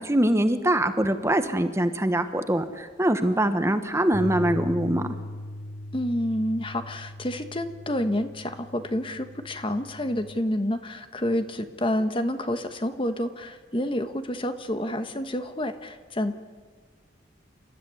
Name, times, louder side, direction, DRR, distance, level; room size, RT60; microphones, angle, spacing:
voice 1, 0.0-5.1, right 1 dB, 15° right, 8 dB, 1.2 m, -23 dB
Bass guitar, 4.1-10.4, left 1 dB, 70° left, 4.6 m, -39 dB
voice 2, 5.9-16.3, left 1 dB, 30° left, 8 dB, 1.2 m, -29 dB
28.5 x 13.5 x 9.6 m, 1.5 s
head